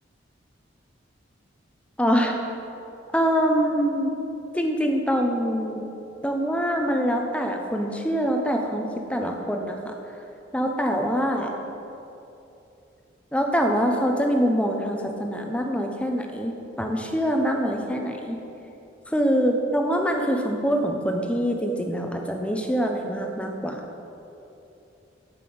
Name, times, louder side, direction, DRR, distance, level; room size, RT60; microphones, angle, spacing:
voice 1, 2.0-2.4 3.1-4.1 4.5-5.9 6.2-9.9 10.5-11.5 13.3-18.4 19.1-23.8, equal, 5° left, 2 dB, 0.9 m, -24 dB
12.0 x 5.9 x 7.7 m, 2.9 s
head